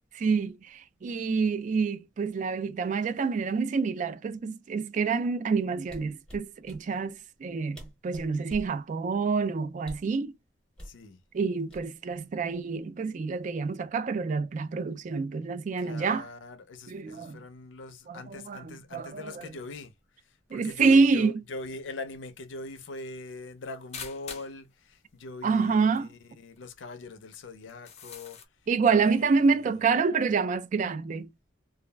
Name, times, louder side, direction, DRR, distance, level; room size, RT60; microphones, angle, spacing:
voice 1, 0.1-7.8 8.0-10.3 11.3-16.3 16.9-17.4 18.1-19.5 20.5-21.3 25.4-26.1 28.7-31.3, right 4 dB, 40° right, 0.3 m, -27 dB
sound 1, 5.8-6.8 7.5-7.6 7.7-8.8 9.8-10.2 10.8-11.0 11.7-12.2 12.5-12.8, equal, 5° left, 0.8 m, -45 dB
voice 2, 10.9-11.2 15.8-19.9 20.5-28.4 29.0-29.8, left 3 dB, 90° left, 0.5 m, -42 dB
sound 2, 23.9-24.6 25.6-25.7 25.9-26.0 26.6-26.7 27.7-28.5, left 6 dB, 35° left, 0.5 m, -43 dB
2.3 x 2.0 x 3.2 m
head